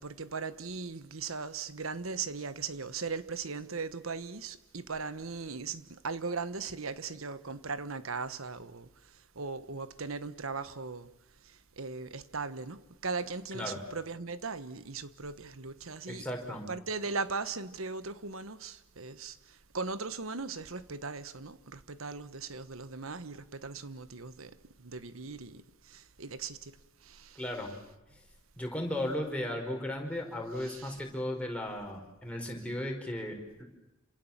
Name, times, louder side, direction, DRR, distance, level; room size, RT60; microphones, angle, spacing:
voice 1, 0.0-8.9 9.3-11.1 11.8-16.3 16.7-19.4 19.7-25.6 25.9-26.7 27.0-27.4 30.7-30.9, right 4 dB, 85° right, 1.3 m, -38 dB
voice 2, 16.1-16.6 27.3-27.7 28.6-33.6, left 1 dB, 5° left, 5.1 m, -36 dB
28.0 x 26.5 x 7.4 m
head